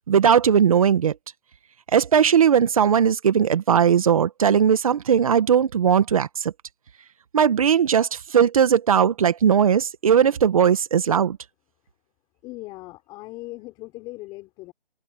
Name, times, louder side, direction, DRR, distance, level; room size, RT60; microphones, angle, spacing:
voice 1, 0.1-1.1 1.9-6.5 7.3-11.4, right 8 dB, 35° right, 1.7 m, -18 dB
voice 2, 12.4-14.7, left 20 dB, 15° left, 6.1 m, -39 dB
open air
hypercardioid pair, 165°, 30 cm